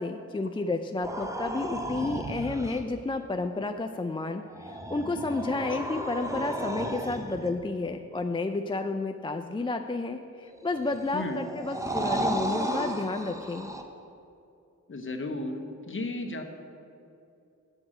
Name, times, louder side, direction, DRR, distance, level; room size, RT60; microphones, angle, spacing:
voice 1, 0.0-13.7, left 3 dB, 15° left, 6 dB, 0.3 m, -31 dB
sound 1, 1.0-2.8 4.4-7.6 10.5-13.8, right 1 dB, 10° right, 0.7 m, -34 dB
voice 2, 14.9-16.4, left 2 dB, 40° left, 5 dB, 0.9 m, -34 dB
8.0 x 7.4 x 4.9 m, 2.7 s
cardioid pair, 70°, 31 cm